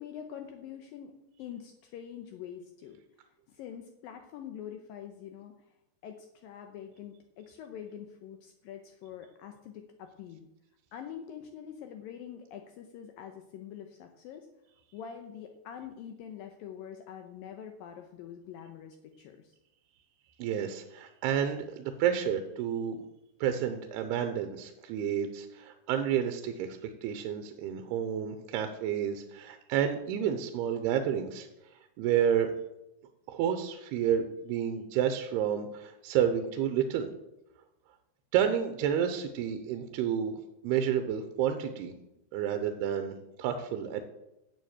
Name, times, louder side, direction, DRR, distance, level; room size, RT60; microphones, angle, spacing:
voice 1, 0.0-3.0 3.5-5.7 6.0-10.5 10.9-14.5 14.9-19.6, left 9 dB, 75° left, 5 dB, 2.3 m, -45 dB
voice 2, 20.4-23.0 23.4-31.5 32.0-32.5 33.3-37.1 38.3-40.4 40.6-41.9 42.3-44.0, right 9 dB, 90° right, 7 dB, 2.8 m, -30 dB
9.4 x 7.0 x 8.8 m, 0.90 s
omnidirectional pair, 4.6 m